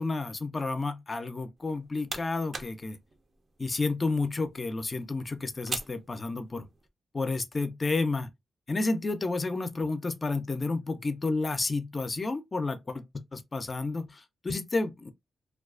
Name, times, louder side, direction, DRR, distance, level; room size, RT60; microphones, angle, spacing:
voice 1, 0.0-3.0 3.6-6.7 7.1-8.3 8.7-13.0 13.3-15.1, left 3 dB, 35° left, 0.5 m, -31 dB
sound 1, 1.6-6.9, right 3 dB, 40° right, 0.6 m, -43 dB
2.3 x 2.3 x 2.4 m
cardioid pair, 70°, 0 cm